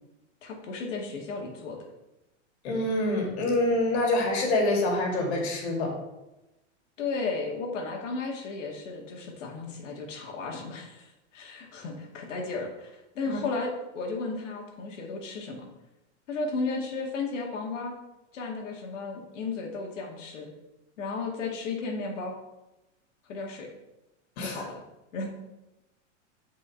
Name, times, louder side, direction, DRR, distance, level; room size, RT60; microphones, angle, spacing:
voice 1, 0.4-1.8 7.0-15.7 16.3-17.9 18.3-20.5 21.0-22.4 23.3-23.7 24.4-24.8 25.1-25.3, left 3 dB, 85° left, 0 dB, 2.1 m, -34 dB
voice 2, 2.6-5.9 13.3-13.4 24.4-24.6, left 2 dB, 60° left, 0 dB, 2.7 m, -26 dB
7.0 x 5.3 x 4.4 m, 0.96 s
supercardioid pair, 155°, 37 cm